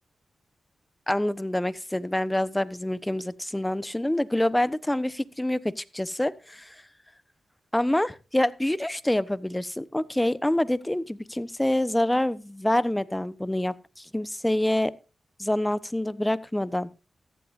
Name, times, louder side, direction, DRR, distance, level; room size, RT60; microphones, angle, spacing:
voice 1, 1.1-6.8 7.7-14.9 15.4-16.9, left 1 dB, 15° left, 1.0 m, -26 dB
14.5 x 13.5 x 2.6 m
supercardioid pair, 40°, 0 cm